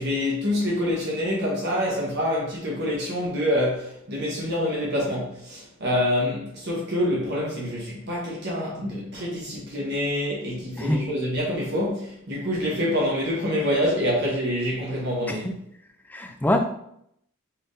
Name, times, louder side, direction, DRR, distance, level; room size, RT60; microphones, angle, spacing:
voice 1, 0.0-15.5, left 1 dB, 50° right, 1.1 m, -26 dB
voice 2, 16.1-16.6, left 1 dB, 10° left, 0.3 m, -24 dB
4.2 x 3.4 x 2.6 m
head